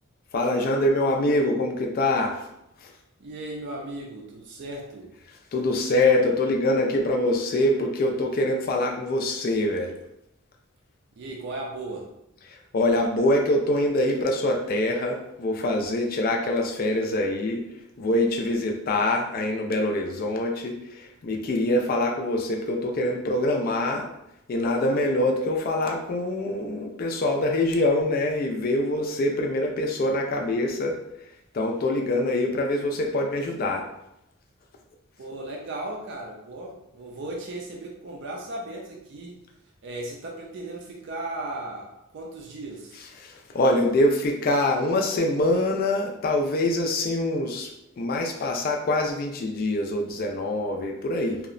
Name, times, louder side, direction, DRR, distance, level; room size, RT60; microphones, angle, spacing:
voice 1, 0.3-2.5 2.8-2.9 5.5-10.0 12.5-17.6 18.0-24.1 24.5-31.0 31.5-33.8 43.2-51.4, left 1 dB, 45° left, 2 dB, 0.3 m, -24 dB
voice 2, 3.2-5.1 11.1-12.1 35.2-39.4 39.8-43.0, right 2 dB, 60° right, -1 dB, 0.4 m, -36 dB
2.8 x 2.0 x 2.5 m, 0.85 s
head